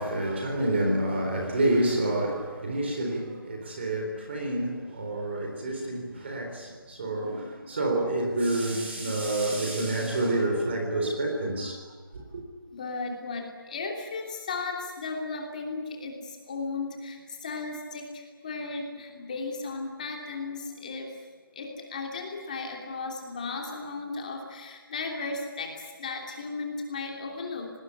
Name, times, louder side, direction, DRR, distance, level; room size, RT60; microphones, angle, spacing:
voice 1, 0.0-11.8 12.1-12.4, right 1 dB, 30° right, 3.9 m, -28 dB
voice 2, 12.7-21.1 21.5-27.7, left 3 dB, 20° left, 3.0 m, -35 dB
25.5 x 19.5 x 9.8 m
hypercardioid pair, 180°, 12 cm